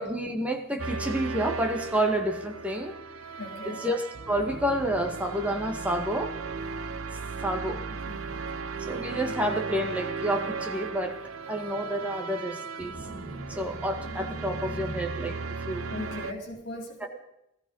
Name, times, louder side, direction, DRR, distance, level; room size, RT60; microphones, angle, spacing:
voice 1, 0.0-2.9 3.7-6.3 7.4-7.8 8.3-8.4 8.8-11.2 11.5-15.4 15.7-15.8 17.0-17.1, right 1 dB, 5° right, 3 dB, 1.8 m, -29 dB
sound 1, 0.8-16.3, right 4 dB, 85° right, 0.9 m, -36 dB
voice 2, 3.3-3.8 8.0-8.2 9.0-9.2 10.9-11.0 12.1-12.4 15.9-17.1, left 1 dB, 60° left, 2 dB, 4.1 m, -39 dB
18.0 x 14.5 x 5.6 m, 0.84 s
head